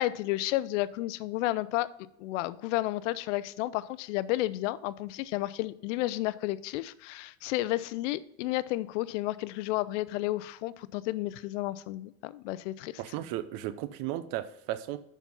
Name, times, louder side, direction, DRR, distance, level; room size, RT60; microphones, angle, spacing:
voice 1, 0.0-1.9 2.2-13.0, left 17 dB, 85° left, 18 dB, 0.6 m, -32 dB
voice 2, 13.0-15.0, right 13 dB, 60° right, 13 dB, 0.8 m, -35 dB
7.1 x 5.9 x 5.4 m, 0.78 s
supercardioid pair, 120°, 36 cm